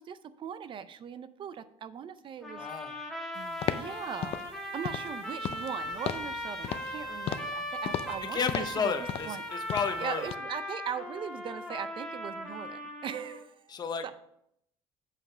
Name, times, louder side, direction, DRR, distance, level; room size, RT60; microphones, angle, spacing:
voice 1, 0.0-2.8 3.3-4.4 4.7-8.9 9.3-9.4 10.0-14.1, right 8 dB, 45° right, 14 dB, 0.5 m, -40 dB
sound 1, 2.4-13.4, equal, ahead, 1.5 m, -38 dB
voice 2, 2.6-2.9 8.3-10.3 13.7-14.1, left 6 dB, 35° left, 7 dB, 0.8 m, -32 dB
sound 2, 3.6-3.9 4.2-4.5 4.8-5.1 5.4-5.7 6.0-6.3 6.6-7.0 7.3-7.6 7.8-8.2 8.5-8.8 9.1-9.4 9.7-10.0 10.3-10.4, left 10 dB, 55° left, 0.4 m, -35 dB
sound 3, 5.8-9.2, right 3 dB, 90° right, 2.1 m, -57 dB
7.7 x 4.9 x 5.6 m, 0.75 s
cardioid pair, 125°, 12 cm